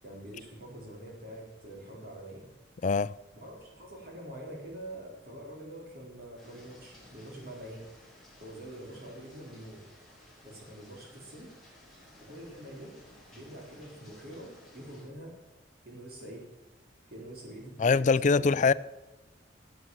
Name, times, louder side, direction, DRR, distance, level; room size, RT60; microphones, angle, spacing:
voice 1, 0.0-2.5 3.3-7.9 8.4-9.8 10.4-11.5 12.2-12.9 13.3-15.4 15.9-16.5 17.1-18.7, right 1 dB, 55° right, 4.2 m, -45 dB
voice 2, 2.8-3.1 17.8-18.7, left 4 dB, 45° left, 0.4 m, -23 dB
sound 1, 6.4-15.1, left 1 dB, ahead, 5.4 m, -57 dB
12.0 x 7.9 x 7.5 m
head